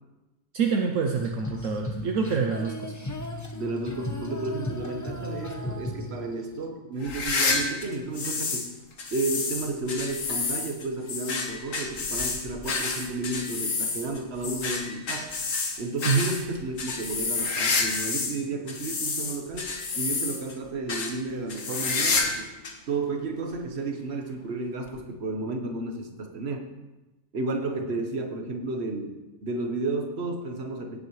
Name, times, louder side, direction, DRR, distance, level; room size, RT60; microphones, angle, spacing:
voice 1, 0.5-2.9 16.1-16.3, right 5 dB, 70° right, 3 dB, 1.1 m, -26 dB
Female singing, 1.2-6.6, left 1 dB, 15° left, 0.7 m, -35 dB
voice 2, 3.5-8.7 9.1-15.4 15.8-22.6 22.9-26.7 27.3-31.0, right 3 dB, 50° right, 4 dB, 1.4 m, -32 dB
sound 1, 7.0-8.7 9.0-18.4 18.7-20.5 20.9-21.1 21.5-22.4 22.6-22.7 23.5-23.6 24.9-25.0, left 4 dB, 70° left, 1.7 m, -29 dB
16.5 x 7.9 x 3.2 m, 1.0 s
omnidirectional pair, 1.4 m